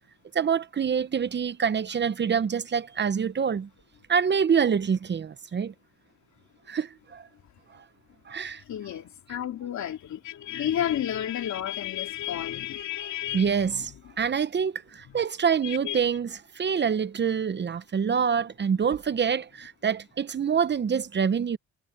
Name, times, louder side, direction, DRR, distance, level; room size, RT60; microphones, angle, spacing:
voice 1, 0.3-3.7 4.1-5.7 6.7-7.3 7.7-7.8 8.3-8.6 10.5-10.6 13.3-21.6, right 7 dB, 35° right, 0.8 m, -26 dB
voice 2, 8.7-13.9 15.6-16.0, left 11 dB, 70° left, 3.1 m, -32 dB
cardioid pair, 90°, 30 cm